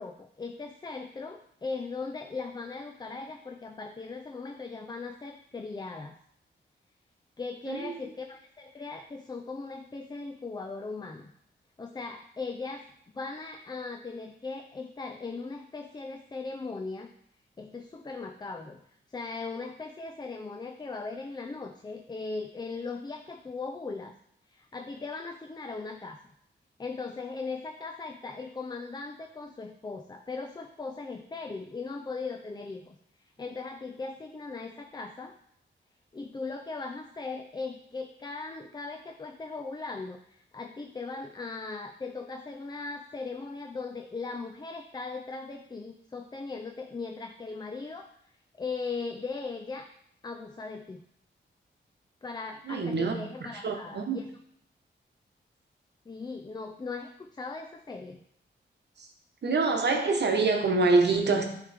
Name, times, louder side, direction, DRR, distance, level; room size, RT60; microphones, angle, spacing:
voice 1, 0.0-6.2 7.4-11.3 11.8-12.9 13.1-17.1 17.6-18.8 19.1-24.2 24.5-26.2 26.8-33.0 33.4-35.3 36.1-48.1 48.6-49.9 50.2-51.0 52.2-54.3 56.1-58.2, left 4 dB, 20° left, 5 dB, 0.4 m, -38 dB
voice 2, 7.7-8.0 52.6-53.1 53.4-54.2 59.0-59.1 59.4-61.4, right 3 dB, 60° right, 3 dB, 1.0 m, -25 dB
9.4 x 3.2 x 3.4 m, 0.72 s
cardioid pair, 65°, 20 cm